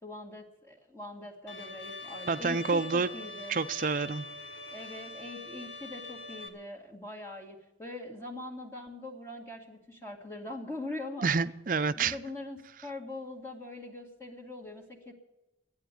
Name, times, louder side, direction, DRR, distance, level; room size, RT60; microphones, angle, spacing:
voice 1, 0.0-3.5 4.7-11.3 11.9-15.1, left 2 dB, 15° left, -2 dB, 1.9 m, -42 dB
Bowed string instrument, 1.5-6.5, left 2 dB, 80° left, 1.8 m, -43 dB
voice 2, 2.3-3.1 3.5-4.3 11.2-12.2, right 4 dB, 45° right, 14 dB, 0.5 m, -28 dB
13.5 x 9.3 x 9.0 m, 0.95 s
head